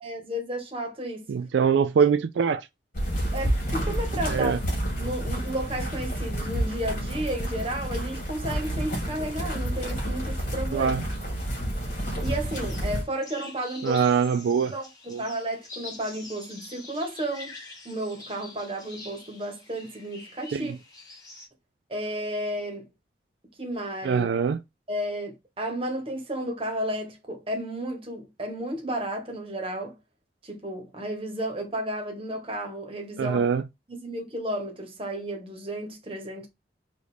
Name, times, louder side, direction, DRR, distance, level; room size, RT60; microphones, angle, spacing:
voice 1, 0.0-1.3 2.0-2.1 3.3-4.6 5.0-10.9 12.2-14.0 14.7-17.5 17.8-20.7 21.9-22.9 23.6-24.3 24.9-30.0 30.4-33.5 33.9-36.5, right 1 dB, 30° right, 1.2 m, -33 dB
voice 2, 1.3-2.6 4.3-4.6 10.7-11.0 13.8-14.7 15.1-15.2 20.5-20.8 24.0-24.6 33.2-33.6, right 6 dB, 85° right, 0.3 m, -23 dB
sound 1, 2.9-13.0, equal, 50° left, 2.2 m, -29 dB
sound 2, 12.2-21.5, left 3 dB, 20° left, 1.8 m, -45 dB
4.9 x 2.6 x 3.3 m
head